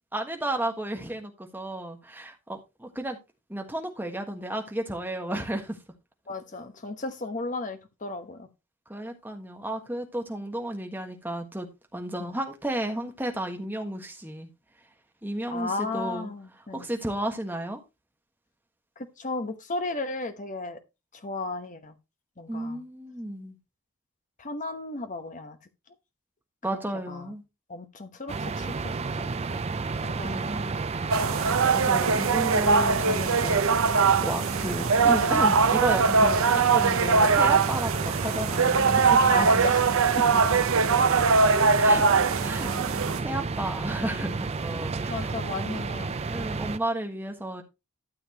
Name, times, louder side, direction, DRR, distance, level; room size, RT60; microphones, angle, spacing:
voice 1, 0.1-3.2 3.5-5.8 8.9-14.5 15.2-16.3 16.7-17.8 22.5-23.6 26.6-27.4 30.2-30.8 31.3-39.6 40.3-40.4 41.8-42.7 43.0-45.3 46.3-47.6, right 1 dB, 10° right, 1.4 m, -33 dB
voice 2, 6.3-8.5 12.2-12.3 15.5-16.9 19.0-20.8 21.1-21.9 22.4-22.8 24.4-25.6 27.1-27.3 27.7-28.7 29.2-29.6 30.0-30.7 38.1-38.2 39.3-40.2 45.1-46.3, left 3 dB, 35° left, 1.1 m, -34 dB
sound 1, 28.3-46.8, right 4 dB, 30° right, 0.4 m, -32 dB
sound 2, 31.1-43.2, right 5 dB, 60° right, 0.7 m, -22 dB
12.5 x 7.1 x 2.9 m
head